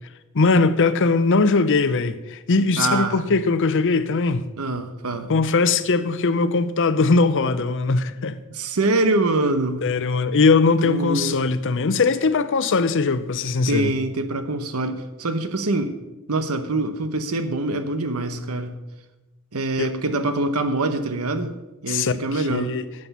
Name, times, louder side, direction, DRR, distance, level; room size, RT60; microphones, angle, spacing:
voice 1, 0.3-4.4 5.3-8.3 9.0-9.1 9.8-13.9 19.8-19.9 21.9-22.8, left 4 dB, 60° left, 0.6 m, -20 dB
voice 2, 2.8-3.2 4.6-5.3 8.5-9.9 10.8-11.4 13.7-16.0 16.3-18.7 19.5-21.6 21.8-22.8, right 2 dB, 75° right, 1.0 m, -24 dB
11.5 x 7.8 x 5.4 m
head